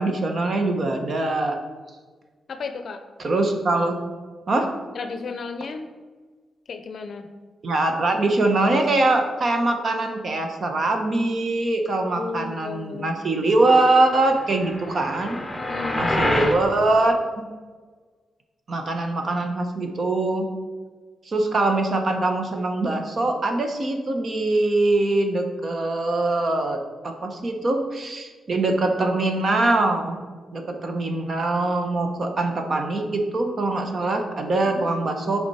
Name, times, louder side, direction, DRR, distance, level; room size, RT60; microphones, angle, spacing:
voice 1, 0.0-1.6 3.2-4.0 4.5-4.7 7.6-15.4 15.9-17.5 18.7-20.5 21.3-26.8 27.0-30.2 30.5-35.4, right 2 dB, 45° right, 4 dB, 1.0 m, -23 dB
voice 2, 2.5-3.0 4.9-5.8 6.7-7.2 11.9-13.1 15.6-16.1 34.6-35.0, left 4 dB, 60° left, 7 dB, 0.5 m, -34 dB
sound 1, 14.4-16.6, left 1 dB, 5° left, 1.3 m, -26 dB
7.9 x 5.1 x 4.3 m, 1.4 s
cardioid pair, 115°, 0 cm